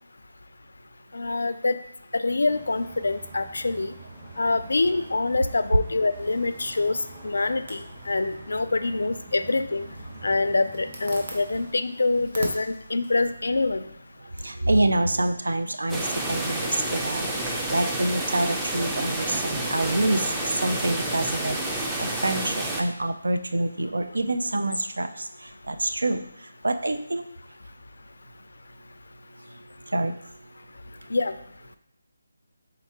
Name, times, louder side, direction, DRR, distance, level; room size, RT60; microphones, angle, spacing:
voice 1, 1.1-1.8 2.1-3.9 4.4-7.0 7.2-9.9 10.2-13.9 31.1-31.3, left 3 dB, 75° left, 11 dB, 0.3 m, -25 dB
sound 1, 2.4-11.7, right 2 dB, 30° right, 1.4 m, -45 dB
Zipper (clothing), 6.0-14.2, right 2 dB, 50° right, 0.9 m, -43 dB
voice 2, 14.2-27.3 29.3-31.2, right 1 dB, 80° right, 8 dB, 0.5 m, -27 dB
sound 2, 15.9-22.8, right 1 dB, 5° right, 0.4 m, -29 dB
4.5 x 3.9 x 2.8 m, 0.74 s
figure-of-eight pair, 160°, 0 cm